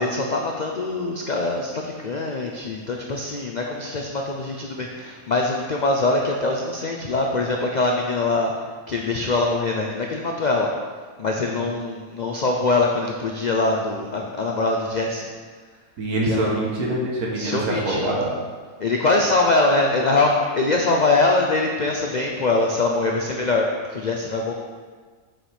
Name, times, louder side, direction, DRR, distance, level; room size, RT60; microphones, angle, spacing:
voice 1, 0.0-8.5 8.9-10.7 11.2-15.3 16.2-16.5 17.3-18.2 18.8-24.5, left 2 dB, 75° left, 0 dB, 0.4 m, -23 dB
voice 2, 16.0-18.3, right 1 dB, 85° right, -3 dB, 1.6 m, -24 dB
7.7 x 5.8 x 3.4 m, 1.5 s
omnidirectional pair, 1.6 m